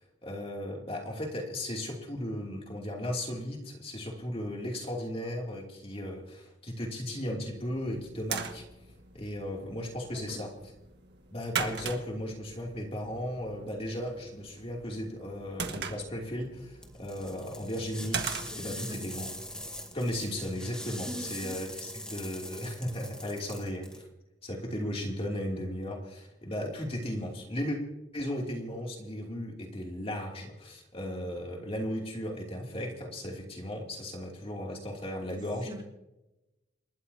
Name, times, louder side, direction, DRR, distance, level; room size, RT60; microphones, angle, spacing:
voice 1, 0.0-8.6 9.1-10.7 11.3-19.3 19.9-24.1 24.4-27.8 28.1-35.7, left 1 dB, 30° left, 0 dB, 2.8 m, -36 dB
sound 1, 7.5-20.6, right 6 dB, 60° right, 1.7 m, -41 dB
sound 2, 16.8-24.0, left 1 dB, 5° left, 2.0 m, -42 dB
voice 2, 18.5-19.0 21.0-21.5 35.3-35.8, equal, 25° right, 0 dB, 3.9 m, -43 dB
28.5 x 13.5 x 2.8 m, 0.94 s
head